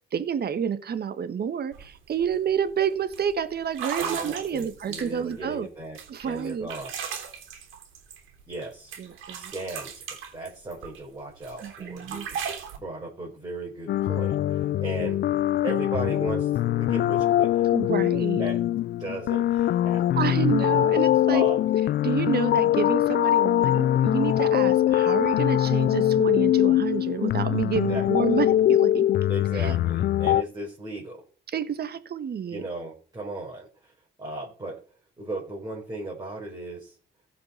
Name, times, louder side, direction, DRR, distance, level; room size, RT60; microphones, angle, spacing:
voice 1, 0.1-5.7 6.1-6.7 9.0-9.5 11.6-12.3 17.7-18.4 20.2-21.4 22.0-29.1 29.5-29.8 31.5-32.6, right 7 dB, 55° right, 1.4 m, -29 dB
sound 1, 1.7-1.9 2.2-2.5 3.1-3.2 3.7-5.4 6.0-8.7 8.9-11.0 11.4-12.8, right 7 dB, 90° right, 3.4 m, -36 dB
voice 2, 4.0-6.0 6.2-6.9 8.5-8.9 9.4-12.4 12.8-15.2 15.6-16.5 16.8-17.6 18.4-18.6 19.0-20.2 21.3-21.7 27.9-28.1 29.3-31.2 32.5-33.9 34.2-34.8 35.2-37.0, right 2 dB, 20° right, 4.4 m, -36 dB
sound 2, 13.9-30.4, left 12 dB, 55° left, 0.4 m, -22 dB
15.5 x 6.0 x 5.6 m
cardioid pair, 90°, 20 cm